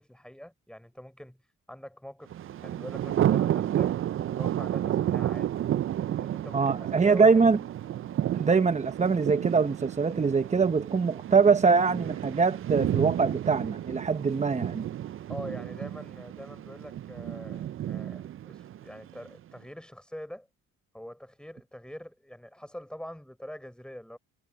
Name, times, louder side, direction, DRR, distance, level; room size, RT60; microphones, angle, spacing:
voice 1, 0.0-1.4 1.7-4.0 4.4-5.5 6.1-7.4 8.0-8.2 15.3-20.5 20.9-24.2, equal, 5° left, 5.4 m, -44 dB
Thunder, 2.3-19.3, right 11 dB, 45° right, 0.4 m, -31 dB
voice 2, 6.5-7.6 8.3-14.9, right 5 dB, 25° right, 0.8 m, -23 dB
cardioid pair, 90°, 30 cm